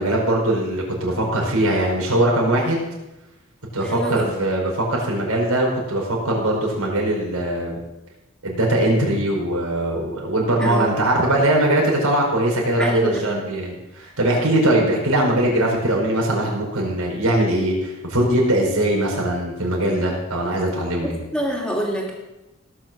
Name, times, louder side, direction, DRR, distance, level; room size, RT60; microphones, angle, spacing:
voice 1, 0.0-2.8 3.7-7.8 8.4-21.2, right 1 dB, 80° right, -2 dB, 5.0 m, -21 dB
voice 2, 3.9-4.3 10.6-10.9 12.8-13.5 21.0-22.1, equal, 5° left, -1 dB, 2.7 m, -26 dB
17.5 x 6.6 x 7.5 m, 0.98 s
head